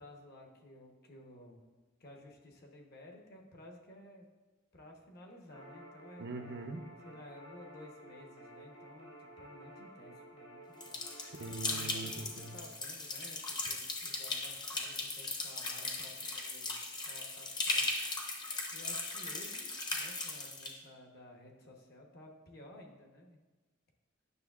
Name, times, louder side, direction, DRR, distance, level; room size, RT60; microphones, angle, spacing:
voice 1, 0.0-1.6 2.0-4.2 4.7-6.2 7.0-11.0 11.7-16.7 17.0-17.9 18.7-23.4, left 1 dB, 50° left, 1 dB, 0.9 m, -54 dB
sound 1, 5.5-12.6, right 1 dB, 80° left, 1.9 m, -53 dB
voice 2, 6.2-6.8 11.2-12.6, right 3 dB, 55° right, 5 dB, 0.6 m, -42 dB
sound 2, 10.8-20.7, left 3 dB, 20° left, 0.7 m, -38 dB
9.5 x 6.1 x 2.4 m, 1.3 s
head